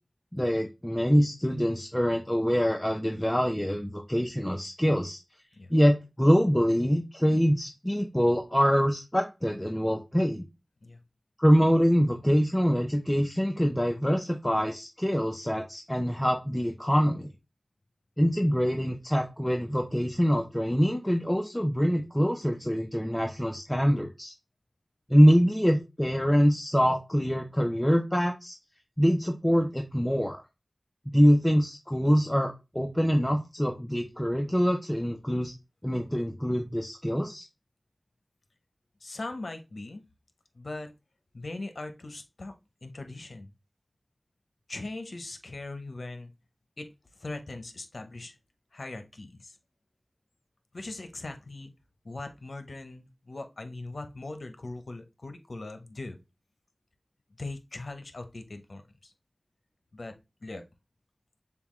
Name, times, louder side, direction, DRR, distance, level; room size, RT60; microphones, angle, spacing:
voice 1, 0.3-5.2 5.7-10.5 11.4-17.3 18.2-24.3 25.1-28.5 29.0-30.4 31.1-35.5 35.8-37.5, equal, 15° left, 2 dB, 0.7 m, -24 dB
voice 2, 39.0-40.0 40.5-40.9 41.3-42.5 42.8-43.5 44.7-46.3 46.8-46.9 47.2-48.4 48.7-49.6 50.7-51.7 52.0-56.2 57.4-59.1 59.9-60.1 60.4-60.6, left 2 dB, 80° left, 7 dB, 0.7 m, -40 dB
6.9 x 2.3 x 3.0 m, 0.25 s
wide cardioid pair, 40°, 0 cm